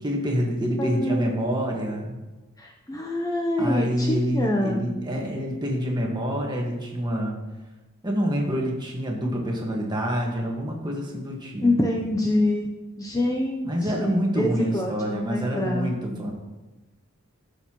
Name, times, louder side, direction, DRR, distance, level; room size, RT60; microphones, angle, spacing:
voice 1, 0.0-2.2 3.6-7.4 8.0-12.0 13.6-16.3, equal, 20° right, -1 dB, 1.5 m, -27 dB
voice 2, 0.8-1.2 2.6-4.8 11.6-12.7 13.0-14.5 14.7-16.1, left 1 dB, 15° left, 0 dB, 0.6 m, -26 dB
14.0 x 6.7 x 3.0 m, 1.1 s
head